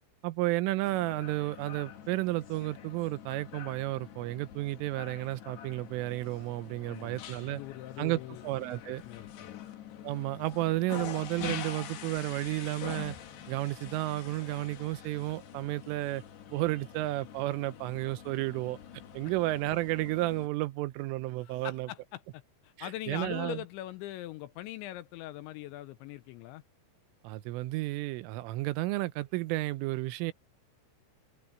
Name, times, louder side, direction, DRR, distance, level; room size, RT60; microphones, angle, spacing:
voice 1, 0.2-7.6 8.0-9.0 10.0-13.2 13.5-16.2 16.5-18.8 19.1-21.9 22.8-23.6 27.2-30.3, right 18 dB, 85° right, 3.3 m, -32 dB
sound 1, 0.8-20.5, left 9 dB, 60° left, 3.7 m, -45 dB
voice 2, 6.8-8.4 9.0-9.7 21.4-26.6, left 15 dB, 85° left, 2.8 m, -42 dB
omnidirectional pair, 5.8 m